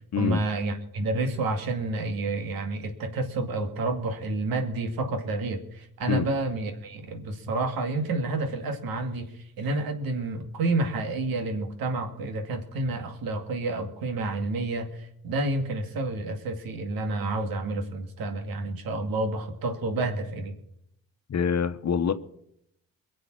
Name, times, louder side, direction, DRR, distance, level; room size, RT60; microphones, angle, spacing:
voice 1, 0.2-9.3 9.6-20.6, right 2 dB, 80° right, 2.3 m, -29 dB
voice 2, 21.3-22.1, left 6 dB, 50° left, 1.1 m, -25 dB
22.5 x 7.8 x 6.1 m
cardioid pair, 70°, 35 cm